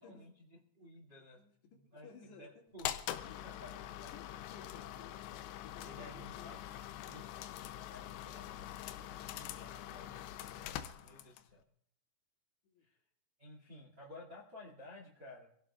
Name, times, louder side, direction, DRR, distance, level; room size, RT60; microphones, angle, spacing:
voice 1, 0.0-1.4 1.7-2.9 3.4-4.1 5.8-7.5 7.9-11.6 12.8-13.0 13.4-15.5, left 1 dB, 35° right, -1 dB, 2.0 m, -55 dB
voice 2, 1.3-2.5 3.2-3.4 4.1-6.6 12.6-12.9, left 6 dB, 60° left, -1 dB, 4.0 m, -58 dB
sound 1, 2.8-11.5, left 12 dB, 80° left, 2.7 m, -44 dB
25.5 x 17.5 x 2.4 m, 0.74 s
omnidirectional pair, 5.7 m